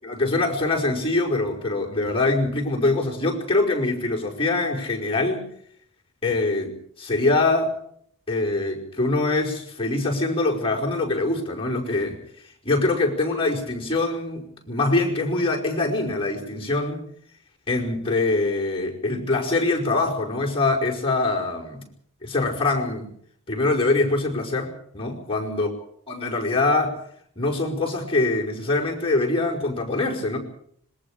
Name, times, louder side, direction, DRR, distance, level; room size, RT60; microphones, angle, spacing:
voice 1, 0.0-5.5 6.2-7.8 8.3-12.2 12.6-17.0 17.7-21.8 22.2-23.1 23.5-25.7 26.1-27.0 27.4-30.4, left 2 dB, 25° left, -1 dB, 5.2 m, -24 dB
26.0 x 21.5 x 5.0 m, 0.64 s
head